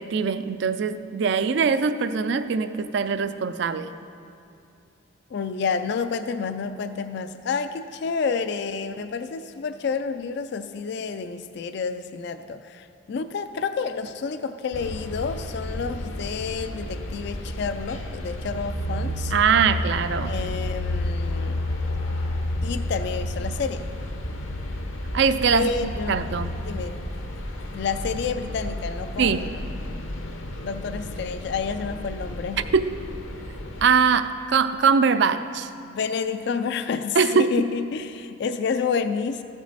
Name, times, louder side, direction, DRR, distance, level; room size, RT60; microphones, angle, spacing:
voice 1, 0.0-3.9 19.3-20.3 25.1-25.7 26.1-26.5 29.2-29.4 32.7-32.8 33.8-35.7 37.2-37.7, right 5 dB, 55° right, 12 dB, 0.4 m, -22 dB
voice 2, 5.3-19.3 20.2-21.6 22.6-23.9 25.5-26.3 26.7-27.0 27.7-30.0 30.6-32.6 35.8-39.4, left 5 dB, 55° left, 10 dB, 0.3 m, -29 dB
sound 1, 14.7-33.9, left 1 dB, 75° left, 1.0 m, -31 dB
14.5 x 6.2 x 4.1 m, 2.7 s
head